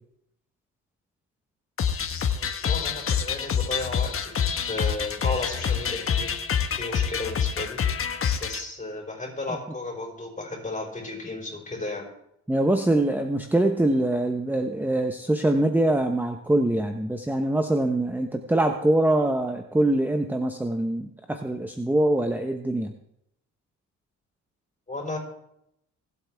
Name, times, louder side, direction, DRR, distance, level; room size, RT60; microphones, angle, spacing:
sound 1, 1.8-8.6, left 7 dB, 45° left, 1.2 m, -27 dB
voice 1, 2.3-4.4 4.7-6.3 6.8-7.8 8.4-12.0 24.9-25.2, left 2 dB, 25° left, 1 dB, 4.8 m, -34 dB
voice 2, 12.5-22.9, right 1 dB, 5° right, 5 dB, 0.9 m, -24 dB
24.5 x 8.4 x 3.5 m, 0.80 s
cardioid pair, 90°, 30 cm